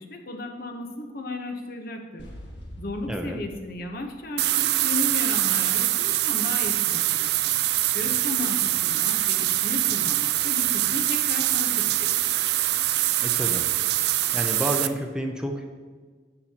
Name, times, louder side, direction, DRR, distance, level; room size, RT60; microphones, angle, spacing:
voice 1, 0.0-2.3 2.8-7.5 7.9-12.4, left 2 dB, 55° left, 4 dB, 1.1 m, -35 dB
sound 1, 2.2-5.1, equal, 90° left, 1.6 m, -44 dB
voice 2, 3.0-3.4 13.2-13.7 14.1-15.6, right 1 dB, 5° right, 3 dB, 0.6 m, -30 dB
sound 2, 4.4-14.9, right 14 dB, 65° right, 0.4 m, -24 dB
10.0 x 7.4 x 2.9 m, 1.5 s
head